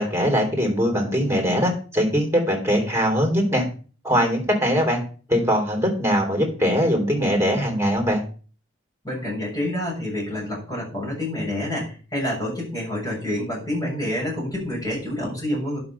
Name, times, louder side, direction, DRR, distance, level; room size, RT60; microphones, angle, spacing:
voice 1, 0.0-3.6 4.0-5.0 5.3-8.2, equal, 15° right, 1 dB, 3.4 m, -21 dB
voice 2, 9.0-15.8, left 1 dB, 20° left, -4 dB, 7.0 m, -28 dB
11.0 x 6.0 x 5.6 m, 0.38 s
head